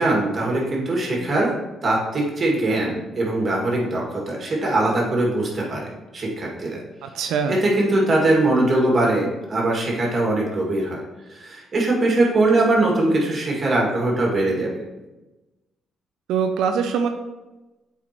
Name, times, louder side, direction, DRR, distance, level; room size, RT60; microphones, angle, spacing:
voice 1, 0.0-1.5 1.8-6.8 7.5-11.0 11.3-14.7, right 2 dB, 40° right, -2 dB, 2.1 m, -21 dB
voice 2, 7.0-7.6 16.3-17.1, right 6 dB, 85° right, 6 dB, 0.4 m, -23 dB
8.0 x 4.7 x 3.0 m, 1.1 s
cardioid pair, 90°, 0 cm